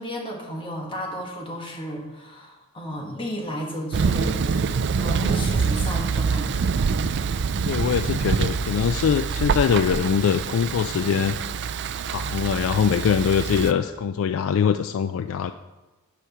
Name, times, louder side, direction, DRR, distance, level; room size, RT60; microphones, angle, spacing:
voice 1, 0.0-4.4 5.0-6.7, equal, 25° left, 0 dB, 1.5 m, -33 dB
Thunder, 3.9-13.7, right 5 dB, 55° right, 0.4 m, -25 dB
voice 2, 7.6-11.3 12.1-15.5, left 7 dB, 65° left, 10 dB, 0.3 m, -23 dB
9.9 x 4.9 x 5.9 m, 1.1 s
head